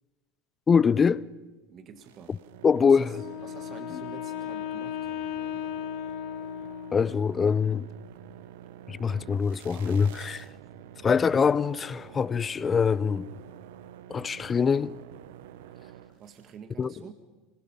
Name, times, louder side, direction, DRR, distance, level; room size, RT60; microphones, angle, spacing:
voice 1, 0.7-1.2 2.3-2.4 2.6-3.2 3.9-4.0 6.9-7.9 8.9-10.5 11.0-13.3 14.1-15.0 16.8-16.9, left 6 dB, 25° left, 0.6 m, -24 dB
voice 2, 1.7-2.3 2.8-3.2 3.4-5.1 5.6-5.7 16.1-17.1, right 7 dB, 40° right, 1.9 m, -47 dB
sound 1, 2.0-16.5, right 11 dB, 70° right, 0.9 m, -48 dB
Wind instrument woodwind instrument, 3.1-7.3, left 11 dB, 60° left, 1.1 m, -36 dB
25.0 x 21.0 x 5.7 m
hypercardioid pair, 80°, 0 cm